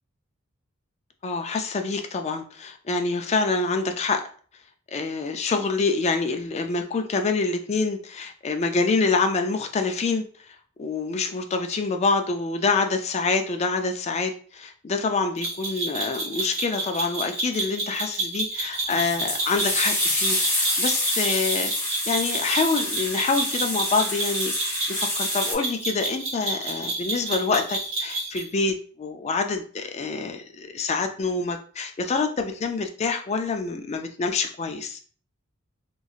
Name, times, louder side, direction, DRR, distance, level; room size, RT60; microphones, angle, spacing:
voice 1, 1.2-4.2 4.9-35.0, left 4 dB, 30° left, 5 dB, 0.3 m, -26 dB
sound 1, 15.4-28.5, right 2 dB, 65° right, 1.0 m, -30 dB
sound 2, 18.9-25.5, left 1 dB, 10° left, 0.9 m, -27 dB
3.0 x 2.7 x 2.3 m, 0.43 s
head